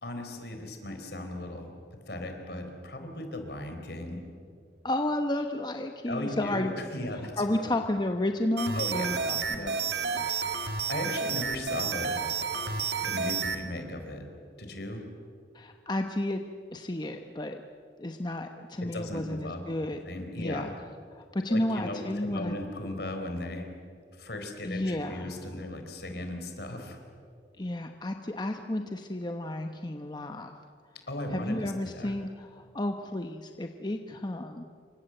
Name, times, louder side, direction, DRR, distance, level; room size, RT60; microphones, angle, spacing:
voice 1, 0.0-4.2 6.1-7.7 8.7-9.3 9.5-9.9 10.5-12.2 13.0-14.3 14.6-15.1 18.8-19.6 20.1-20.7 21.5-23.7 24.1-27.0 31.1-32.1, left 1 dB, 65° left, 5 dB, 4.3 m, -37 dB
voice 2, 4.8-6.7 7.4-9.6 15.5-16.4 16.7-17.6 18.0-20.0 20.4-20.7 21.1-22.6 24.6-25.4 27.6-30.5 31.3-34.6, left 1 dB, 25° left, 5 dB, 1.0 m, -32 dB
sound 1, 8.6-13.6, right 5 dB, 65° right, 2.1 m, -31 dB
27.5 x 25.0 x 7.9 m, 2.3 s
head